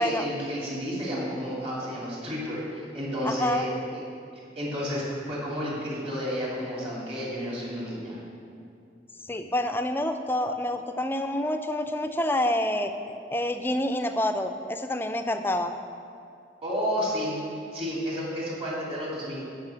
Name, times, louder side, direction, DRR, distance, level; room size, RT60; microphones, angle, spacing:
voice 1, 0.0-4.0 4.6-8.2 16.6-19.4, equal, 35° right, -6 dB, 2.5 m, -31 dB
voice 2, 3.2-3.7 9.3-12.9 13.3-15.7, left 1 dB, 10° left, 7 dB, 0.4 m, -27 dB
8.9 x 5.6 x 7.0 m, 2.5 s
head